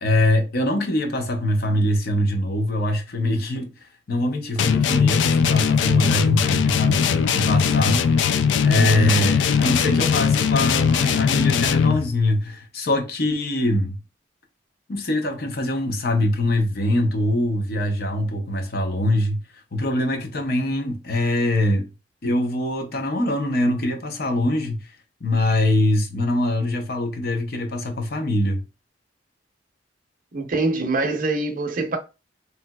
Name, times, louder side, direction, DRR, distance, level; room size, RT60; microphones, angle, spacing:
voice 1, 0.0-3.7 4.1-8.3 8.6-14.0 14.9-19.4 19.7-21.9 22.2-24.9 25.2-28.6, left 1 dB, 60° left, 0.7 m, -23 dB
sound 1, 4.6-12.1, left 7 dB, 75° left, 0.3 m, -20 dB
voice 2, 30.3-32.0, right 3 dB, 50° right, 0.6 m, -24 dB
3.3 x 2.8 x 2.2 m
head